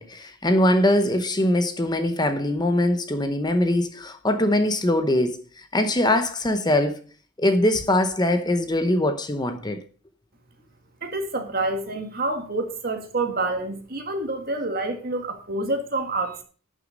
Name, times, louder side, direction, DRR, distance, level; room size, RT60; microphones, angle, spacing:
voice 1, 0.0-7.0 7.4-9.8, left 1 dB, 20° left, 0.8 m, -22 dB
voice 2, 11.0-16.4, right 2 dB, 45° right, 2.0 m, -27 dB
11.5 x 6.5 x 5.3 m
head